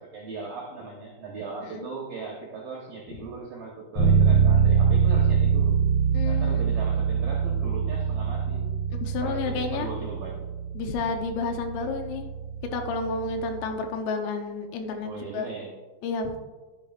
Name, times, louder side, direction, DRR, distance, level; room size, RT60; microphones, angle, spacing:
voice 1, 0.0-5.8 6.3-8.7 9.2-10.4 15.0-15.7, right 4 dB, 75° right, -2 dB, 2.0 m, -38 dB
Bass guitar, 4.0-13.7, right 6 dB, 40° left, 2.0 m, -24 dB
voice 2, 6.1-6.7 8.9-9.9 10.8-12.3 12.7-15.5 16.0-16.3, left 4 dB, 85° left, 4 dB, 3.5 m, -31 dB
12.0 x 8.5 x 2.5 m, 1.3 s
omnidirectional pair, 5.8 m